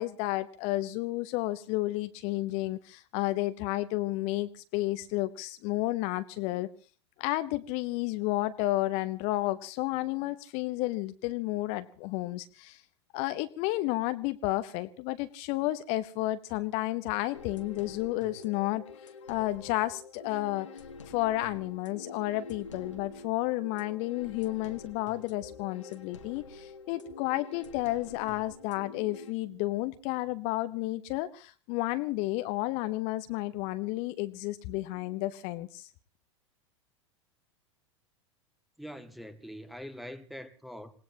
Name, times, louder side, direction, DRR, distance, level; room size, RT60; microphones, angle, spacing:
voice 1, 0.0-6.7 7.2-12.8 13.1-18.8 19.3-20.7 21.1-35.9, left 18 dB, 45° left, 0.9 m, -31 dB
sound 1, 17.3-29.3, left 4 dB, 80° left, 1.7 m, -47 dB
voice 2, 38.8-40.9, equal, ahead, 1.4 m, -43 dB
26.5 x 18.5 x 2.9 m
figure-of-eight pair, 85°, 16 cm